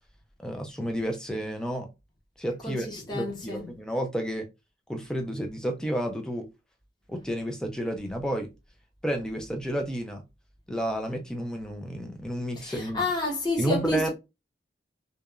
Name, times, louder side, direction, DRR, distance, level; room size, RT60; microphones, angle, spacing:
voice 1, 0.4-1.9 2.4-2.9 3.1-4.5 4.9-6.5 7.1-8.5 9.0-10.2 10.7-13.1 13.6-14.1, equal, 5° left, 0.4 m, -31 dB
voice 2, 2.6-3.6 12.6-14.1, left 2 dB, 25° left, 0.8 m, -30 dB
2.8 x 2.2 x 2.3 m
head